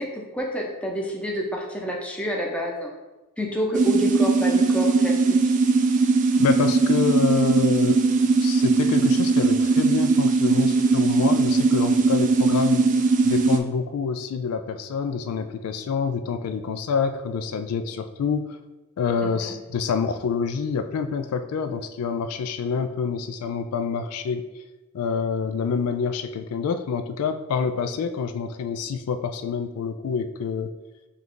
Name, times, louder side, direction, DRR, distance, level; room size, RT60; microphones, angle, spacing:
voice 1, 0.0-2.9 3.4-5.5 19.2-19.6, equal, 5° left, -1 dB, 0.6 m, -28 dB
sound 1, 3.7-13.6, right 4 dB, 35° right, 0.3 m, -20 dB
voice 2, 6.4-8.0 8.4-12.9 13.2-18.6 19.0-24.4 24.9-30.7, left 6 dB, 85° left, 9 dB, 0.3 m, -27 dB
5.5 x 2.4 x 3.7 m, 1.1 s
head